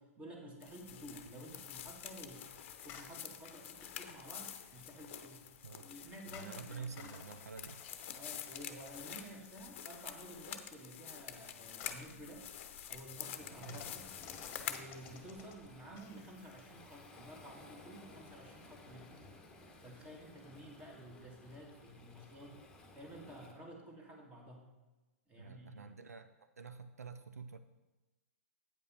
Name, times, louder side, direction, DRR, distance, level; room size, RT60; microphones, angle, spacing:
voice 1, 0.0-2.5 2.8-5.4 5.8-7.1 8.2-12.5 12.9-14.1 14.6-19.1 19.8-22.6 22.9-24.7 25.3-25.8, right 1 dB, 15° right, 0 dB, 1.9 m, -52 dB
sound 1, 0.6-14.8, left 10 dB, 50° left, 0.7 m, -48 dB
sound 2, 0.7-18.9, left 8 dB, 30° left, 1.1 m, -59 dB
voice 2, 6.3-7.9 13.6-13.8 25.4-26.3 26.6-27.6, right 5 dB, 80° right, 10 dB, 0.5 m, -48 dB
Waves surf, 13.4-23.5, left 2 dB, 10° left, 1.3 m, -57 dB
9.0 x 5.4 x 5.7 m, 1.1 s
hypercardioid pair, 120°, 8 cm